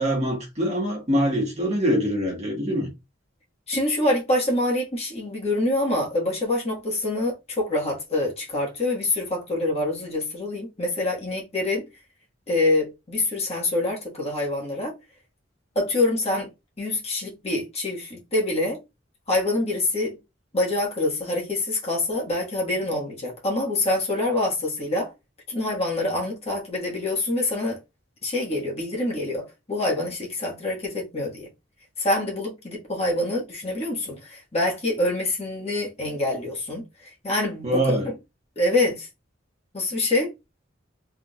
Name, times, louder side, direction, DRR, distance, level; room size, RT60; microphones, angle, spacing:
voice 1, 0.0-2.9 37.6-38.1, equal, 35° right, 1.6 m, -24 dB
voice 2, 3.7-11.9 12.5-14.9 15.7-16.5 16.8-18.8 19.3-20.2 20.5-25.1 25.5-27.8 28.2-31.5 32.0-38.2 38.5-39.1 39.7-40.3, left 2 dB, 35° left, 1.5 m, -26 dB
3.6 x 3.6 x 2.4 m
head